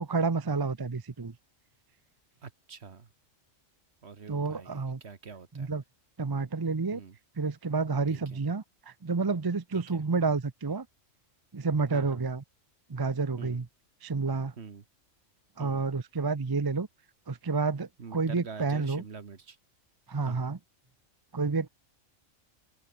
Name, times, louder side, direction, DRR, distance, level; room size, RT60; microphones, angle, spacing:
voice 1, 0.0-1.3 4.3-5.0 5.5-5.8 6.2-7.0 7.4-10.9 11.5-12.4 12.9-13.7 14.0-14.5 15.6-16.9 17.3-19.0 20.1-20.6 21.3-21.7, right 4 dB, 25° right, 0.6 m, -29 dB
voice 2, 2.4-3.1 4.0-5.7 6.9-7.2 8.1-8.4 9.7-10.0 11.9-12.2 13.4-13.6 14.6-14.8 15.6-15.9 18.0-19.6 20.3-20.4, right 5 dB, 60° right, 1.7 m, -45 dB
open air
omnidirectional pair, 1.3 m